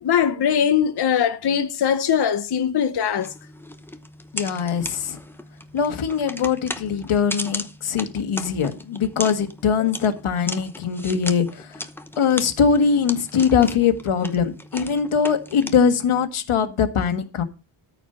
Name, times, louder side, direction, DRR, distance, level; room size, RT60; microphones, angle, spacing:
voice 1, 0.0-3.3, left 8 dB, 55° left, 0.8 m, -21 dB
sound 1, 3.2-16.3, left 1 dB, 5° left, 0.8 m, -37 dB
voice 2, 4.3-5.2 5.7-11.9 12.2-17.4, left 6 dB, 90° left, 1.6 m, -22 dB
13.5 x 4.9 x 6.7 m
wide cardioid pair, 165°, 48 cm